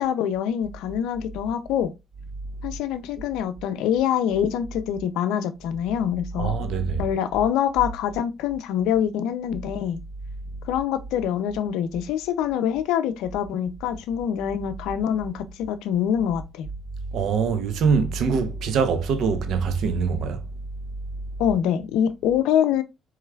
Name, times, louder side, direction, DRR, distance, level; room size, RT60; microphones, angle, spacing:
voice 1, 0.0-1.9 2.6-6.6 7.0-10.0 10.7-16.7 21.4-22.8, left 9 dB, 85° left, 0.5 m, -25 dB
voice 2, 6.4-7.1 17.1-20.4, right 5 dB, 70° right, 0.7 m, -23 dB
4.8 x 3.1 x 2.3 m
supercardioid pair, 60°, 0 cm